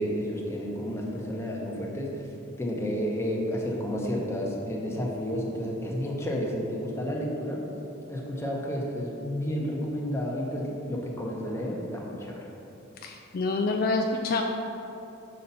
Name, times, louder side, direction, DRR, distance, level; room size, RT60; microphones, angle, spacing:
voice 1, 0.0-2.1 2.6-7.6 8.1-12.4, equal, 15° left, -2 dB, 0.9 m, -31 dB
voice 2, 13.0-14.4, left 3 dB, 45° left, 3 dB, 0.3 m, -27 dB
6.5 x 4.1 x 5.5 m, 3.0 s
head